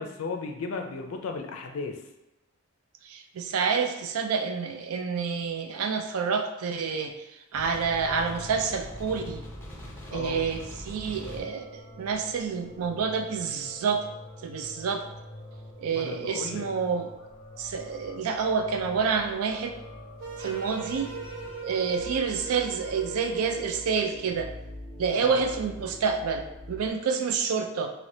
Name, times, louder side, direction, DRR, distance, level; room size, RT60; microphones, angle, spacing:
voice 1, 0.0-2.0 10.1-10.5 15.9-16.7 25.2-25.5, left 4 dB, 75° left, 4 dB, 0.4 m, -35 dB
voice 2, 3.1-7.1 7.5-9.4 10.1-10.6 10.9-14.0 14.4-15.0 15.8-17.1 17.6-19.7 20.4-21.1 21.6-24.5 25.0-27.9, right 5 dB, 85° right, 5 dB, 0.4 m, -28 dB
sound 1, 7.5-26.9, left 1 dB, 10° left, 0.5 m, -44 dB
sound 2, 20.2-24.5, right 4 dB, 70° right, 0.8 m, -40 dB
3.3 x 2.9 x 2.7 m, 0.95 s
head